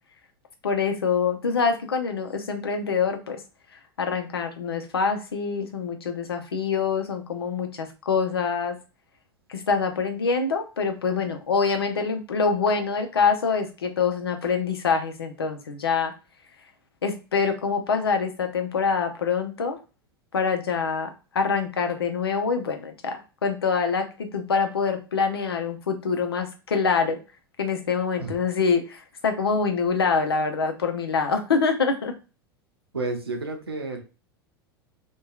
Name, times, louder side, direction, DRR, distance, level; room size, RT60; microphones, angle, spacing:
voice 1, 0.6-3.4 4.0-8.8 9.5-16.1 17.0-19.8 20.3-27.2 27.6-32.1, left 5 dB, 80° left, 6 dB, 0.5 m, -25 dB
voice 2, 32.9-34.0, right 3 dB, 85° right, 4 dB, 0.6 m, -30 dB
2.7 x 2.2 x 2.3 m, 0.31 s
figure-of-eight pair, 85°, 13 cm